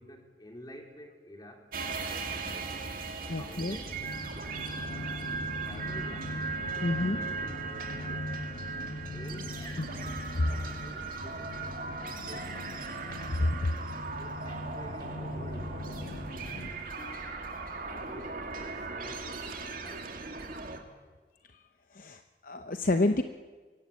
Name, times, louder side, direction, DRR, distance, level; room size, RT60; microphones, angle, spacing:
voice 1, 0.0-2.8 3.4-4.1 4.8-6.4 6.7-8.3 9.1-9.9 10.4-12.9 13.3-13.6 14.2-16.0 16.4-17.3 17.8-20.3, equal, 25° left, 3 dB, 3.2 m, -50 dB
sound 1, 1.7-20.8, right 4 dB, 50° right, 2.3 m, -38 dB
voice 2, 3.3-3.8 6.8-7.2 9.8-9.9 10.4-10.5 13.4-13.5 21.5-21.6 21.9-23.2, left 2 dB, 50° left, 8 dB, 0.8 m, -28 dB
sound 2, 3.7-16.7, left 1 dB, 80° left, 2.0 m, -41 dB
23.5 x 16.5 x 8.5 m, 1.4 s
head